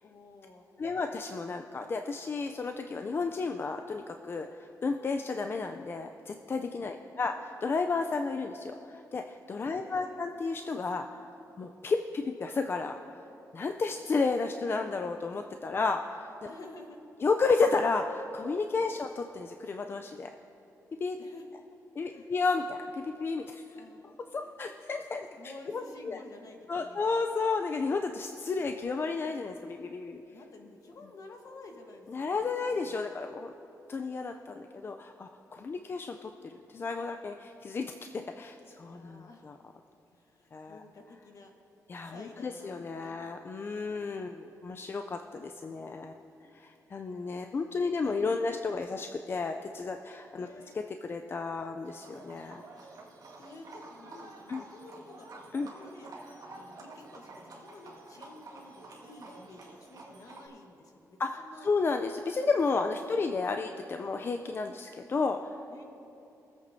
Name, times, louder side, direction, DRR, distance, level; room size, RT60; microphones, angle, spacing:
voice 1, 0.0-1.0 6.8-7.4 9.7-10.2 16.5-17.0 21.2-21.5 22.1-22.3 23.7-24.1 24.4-24.5 25.1-27.2 29.7-29.8 30.3-33.2 35.7-35.9 38.9-39.5 40.1-41.5 42.0-43.2 45.7-46.5 47.3-47.5 48.0-48.5 50.3-50.8 53.4-56.1 56.5-61.7 62.7-63.8 65.7-65.8, left 2 dB, 60° left, 3 dB, 1.2 m, -52 dB
voice 2, 0.8-11.2 11.6-13.0 13.5-16.5 17.2-20.3 21.0-21.2 22.0-23.6 24.3-26.2 26.7-30.2 32.1-33.5 33.9-39.6 40.5-40.8 41.9-46.2 46.5-50.5 50.7-52.6 54.5-54.6 55.5-55.7 61.2-65.6, left 4 dB, 35° left, 5 dB, 0.4 m, -32 dB
Livestock farm animals working animals, 51.8-60.5, right 2 dB, 70° right, 1.8 m, -49 dB
23.5 x 8.3 x 2.7 m, 2.9 s
wide cardioid pair, 125°, 6 cm